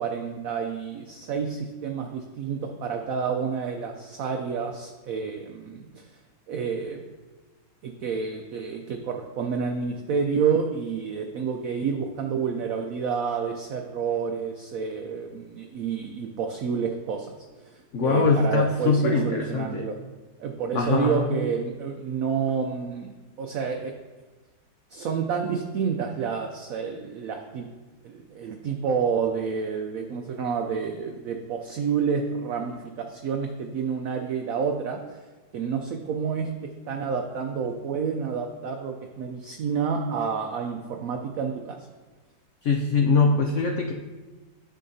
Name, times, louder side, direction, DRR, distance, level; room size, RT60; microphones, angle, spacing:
voice 1, 0.0-6.1 6.5-7.0 7.8-17.3 17.6-20.0 20.4-23.9 24.9-27.7 28.0-35.2 35.5-36.5 36.9-41.8, right 6 dB, 70° right, 4 dB, 0.8 m, -29 dB
voice 2, 17.9-19.9 20.7-21.4 42.6-43.9, left 4 dB, 85° left, 2 dB, 0.6 m, -22 dB
10.0 x 6.5 x 2.7 m, 1.3 s
omnidirectional pair, 1.9 m